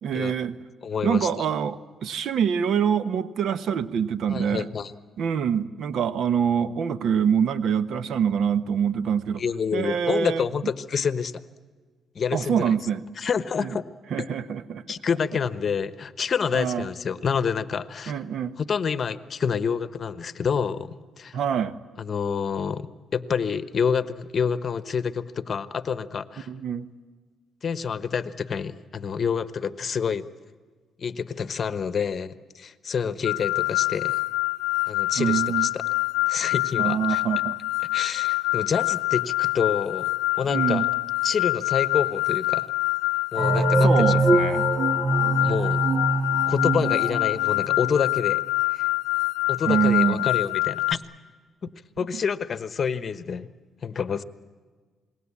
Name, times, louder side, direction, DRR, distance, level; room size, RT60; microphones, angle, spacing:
voice 1, 0.0-0.6 1.0-4.7 5.2-9.4 9.7-10.5 12.3-13.0 13.6-13.8 14.1-14.8 16.5-16.9 18.1-18.6 21.3-21.8 26.5-26.9 35.2-35.7 36.8-37.6 40.5-40.9 43.8-44.7 49.7-50.3, right 7 dB, 70° right, 14 dB, 1.1 m, -25 dB
voice 2, 0.8-1.4 4.3-4.9 9.4-11.3 12.1-12.7 13.2-13.9 14.9-18.2 18.6-21.4 22.0-22.8 23.1-26.5 27.6-30.2 31.0-34.2 34.9-35.8 36.3-37.2 37.9-40.8 41.2-42.7 43.3-44.2 45.4-45.8 46.5-48.4 48.7-48.8 49.5-51.0 51.6-51.7 52.0-53.5 53.8-54.2, left 6 dB, 45° left, 13 dB, 1.2 m, -28 dB
sound 1, 33.2-50.9, left 22 dB, 90° left, 0.7 m, -25 dB
sound 2, 43.4-47.9, right 2 dB, 50° right, 1.7 m, -23 dB
28.0 x 20.5 x 8.6 m, 1.4 s
cardioid pair, 80°, 0 cm